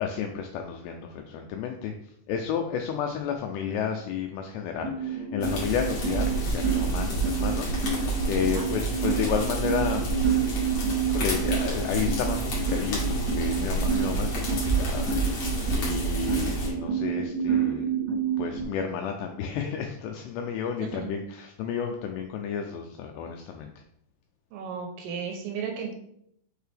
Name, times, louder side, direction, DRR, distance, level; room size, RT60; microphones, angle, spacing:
voice 1, 0.0-1.9 2.3-10.1 11.0-17.9 18.4-23.7, left 7 dB, 90° left, 4 dB, 2.4 m, -32 dB
sound 1, 4.8-18.6, right 6 dB, 15° right, 1.4 m, -29 dB
sound 2, 5.4-16.7, right 2 dB, 60° left, 1.5 m, -29 dB
voice 2, 20.8-21.1 24.5-25.9, right 6 dB, 75° right, 2 dB, 2.4 m, -34 dB
6.4 x 4.6 x 3.4 m, 0.72 s
omnidirectional pair, 5.4 m